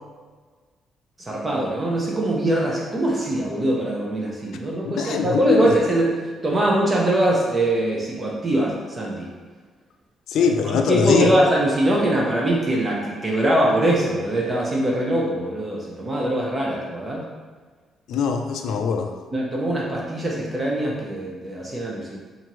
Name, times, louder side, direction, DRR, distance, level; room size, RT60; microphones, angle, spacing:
voice 1, 1.2-6.1 6.4-9.3 10.9-17.2 19.3-22.2, right 1 dB, 30° right, -3 dB, 0.7 m, -22 dB
voice 2, 4.8-5.8 10.3-11.3 18.1-19.1, left 6 dB, 80° left, 4 dB, 0.3 m, -22 dB
4.2 x 2.5 x 3.1 m, 1.4 s
cardioid pair, 90°, 0 cm